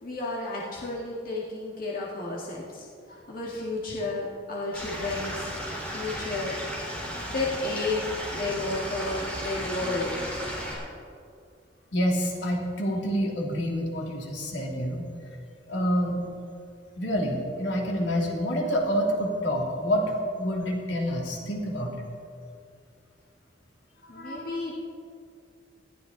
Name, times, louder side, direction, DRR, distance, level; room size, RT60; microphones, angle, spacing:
voice 1, 0.0-5.5 5.9-6.6 7.3-10.2 24.1-24.7, left 2 dB, 50° left, -4 dB, 2.0 m, -32 dB
Stream / Liquid, 4.7-10.7, equal, 10° left, 4.1 m, -34 dB
voice 2, 11.9-15.1 15.7-16.2 17.0-21.9 24.1-24.6, equal, 80° left, -1 dB, 2.9 m, -28 dB
20.0 x 14.0 x 4.0 m, 2.3 s
head